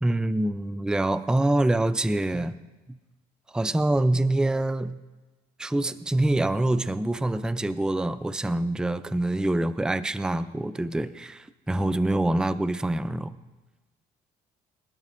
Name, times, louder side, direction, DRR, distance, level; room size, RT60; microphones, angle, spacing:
voice 1, 0.0-2.6 3.5-5.0 5.6-13.4, right 1 dB, 5° right, 13 dB, 0.4 m, -25 dB
22.5 x 12.0 x 2.6 m, 1.2 s
cardioid pair, 110°, 17 cm